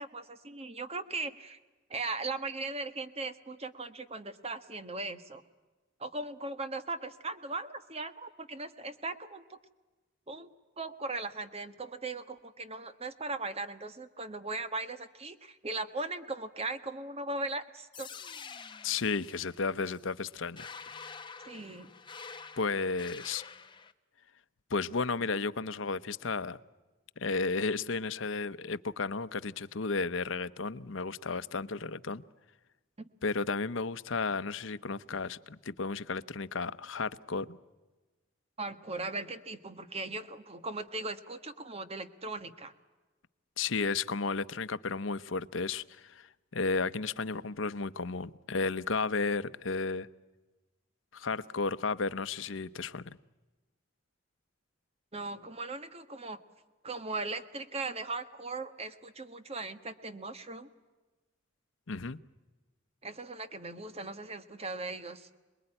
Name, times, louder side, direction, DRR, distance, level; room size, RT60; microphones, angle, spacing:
voice 1, 0.0-1.6 1.9-5.4 6.0-9.6 10.3-10.5 10.8-18.1 21.4-21.9 38.6-42.7 55.1-56.4 56.8-60.7 63.0-65.3, right 3 dB, 30° right, 10 dB, 1.4 m, -38 dB
sound 1, 17.9-23.9, left 5 dB, 25° left, 1.0 m, -47 dB
voice 2, 18.8-21.0 22.6-23.4 24.7-26.6 27.2-32.2 33.2-37.6 43.6-50.1 51.1-53.1 61.9-62.2, left 4 dB, 75° left, 13 dB, 0.9 m, -33 dB
28.0 x 21.0 x 9.9 m, 1.2 s
head